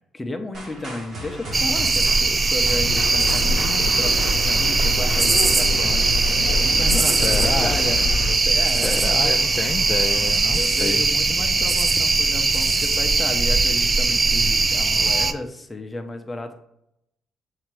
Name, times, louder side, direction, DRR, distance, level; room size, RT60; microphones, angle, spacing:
voice 1, 0.1-9.4 10.5-16.5, left 2 dB, 15° left, 5 dB, 0.9 m, -33 dB
sound 1, 0.5-6.4, equal, 60° right, 2.2 m, -36 dB
sound 2, 1.5-15.3, right 3 dB, 30° right, 0.4 m, -20 dB
sound 3, 2.8-8.4, left 5 dB, 70° left, 0.8 m, -28 dB
voice 2, 7.2-7.7 8.8-11.0, left 5 dB, 40° left, 5 dB, 0.4 m, -28 dB
7.1 x 2.9 x 4.8 m, 0.79 s
cardioid pair, 90°, 0 cm